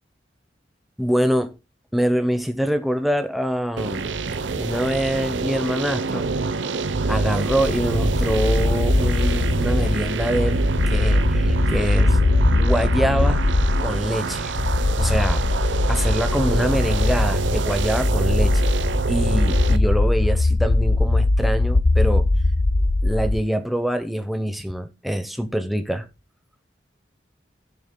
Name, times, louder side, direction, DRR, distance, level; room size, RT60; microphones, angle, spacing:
voice 1, 1.0-1.6 1.9-4.1 4.5-6.3 7.1-10.6 10.9-12.2 12.6-13.4 13.8-14.5 15.0-15.4 15.9-18.7 19.1-22.3 23.0-26.1, equal, ahead, 0.8 m, -24 dB
sound 1, 3.8-19.8, right 3 dB, 85° right, 0.7 m, -25 dB
sound 2, 7.5-23.4, left 2 dB, 50° left, 0.5 m, -21 dB
17.5 x 7.0 x 2.2 m
head